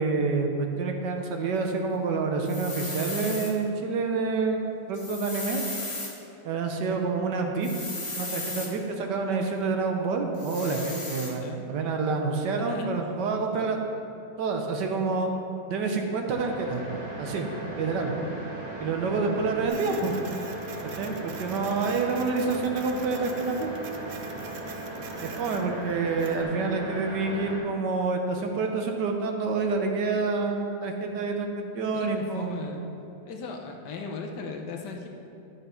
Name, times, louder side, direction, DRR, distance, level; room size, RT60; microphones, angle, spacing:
voice 1, 0.0-5.6 6.4-7.7 8.2-13.8 14.4-15.3 15.7-16.8 17.2-17.5 17.8-18.1 18.8-20.1 20.8-23.7 25.2-32.6, right 4 dB, 70° right, 3 dB, 1.4 m, -28 dB
sound 1, 2.5-3.5 4.9-6.1 7.6-8.7 10.4-11.3, left 2 dB, 20° left, 1.0 m, -35 dB
voice 2, 12.5-12.9 19.8-20.1 31.9-32.8 33.3-35.1, left 4 dB, 70° left, 2 dB, 1.4 m, -38 dB
sound 2, 16.3-27.6, right 1 dB, 35° right, 2.3 m, -38 dB
Printer, 19.7-26.4, right 6 dB, 85° right, 0.5 m, -46 dB
11.0 x 6.7 x 4.3 m, 2.7 s
omnidirectional pair, 2.0 m